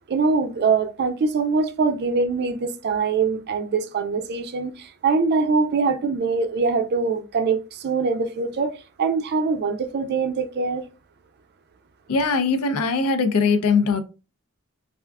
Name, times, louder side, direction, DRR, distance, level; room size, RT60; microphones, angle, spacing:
voice 1, 0.1-8.7 9.0-10.8, right 4 dB, 50° right, 0.4 m, -23 dB
voice 2, 12.1-14.0, left 4 dB, 80° left, 0.5 m, -21 dB
3.4 x 2.4 x 2.2 m
head